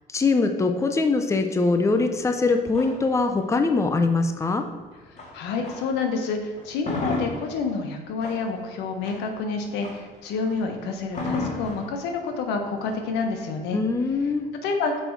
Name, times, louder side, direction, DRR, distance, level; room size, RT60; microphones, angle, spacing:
voice 1, 0.1-4.7 13.7-14.5, left 3 dB, 15° left, 7 dB, 0.6 m, -22 dB
sound 1, 1.9-6.1 6.5-14.4, left 2 dB, 45° left, 1.9 m, -36 dB
voice 2, 5.3-13.8 14.6-15.0, left 4 dB, 85° left, 4 dB, 1.2 m, -28 dB
6.2 x 5.3 x 4.6 m, 1.5 s
cardioid pair, 110°, 17 cm